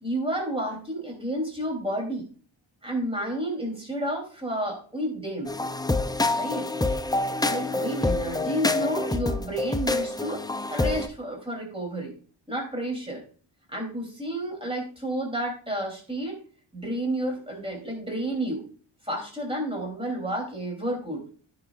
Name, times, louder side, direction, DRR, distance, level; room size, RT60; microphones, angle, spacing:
voice 1, 0.0-2.2 2.8-5.5 6.3-6.7 7.5-10.4 10.7-12.1 12.5-13.2 13.7-16.3 16.7-18.6 19.0-21.3, right 1 dB, 10° right, 0 dB, 3.0 m, -31 dB
sound 1, 5.5-11.1, left 2 dB, 10° left, 0.4 m, -27 dB
15.5 x 6.2 x 2.4 m, 0.42 s
wide cardioid pair, 100°, 50 cm